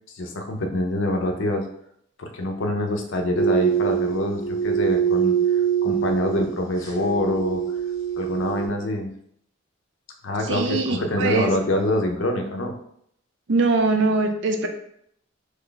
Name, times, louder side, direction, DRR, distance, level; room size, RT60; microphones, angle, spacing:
voice 1, 0.2-1.7 2.2-7.6 8.2-9.1 10.2-12.7, left 1 dB, 65° left, 4 dB, 0.6 m, -25 dB
sound 1, 3.4-8.7, right 8 dB, 15° left, 0.7 m, -24 dB
voice 2, 10.4-11.5 13.5-14.7, right 3 dB, 60° right, 4 dB, 0.5 m, -22 dB
3.2 x 2.3 x 3.8 m, 0.70 s
head